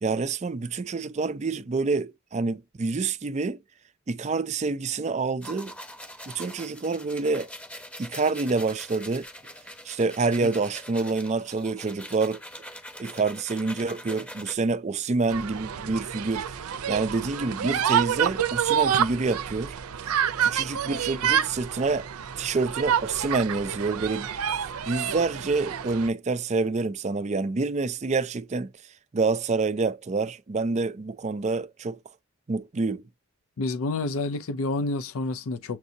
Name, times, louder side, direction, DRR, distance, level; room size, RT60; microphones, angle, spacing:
voice 1, 0.0-3.6 4.1-5.7 6.3-7.5 8.0-9.2 9.8-12.4 13.0-19.8 20.4-22.1 22.4-24.6 24.8-28.7 29.1-32.0 32.5-33.0, right 3 dB, 30° right, 0.4 m, -27 dB
sound 1, 5.4-14.6, equal, 5° left, 0.8 m, -43 dB
sound 2, 15.3-26.1, right 8 dB, 85° right, 0.5 m, -28 dB
voice 2, 33.6-35.8, left 2 dB, 70° left, 0.5 m, -29 dB
7.1 x 2.7 x 2.6 m
head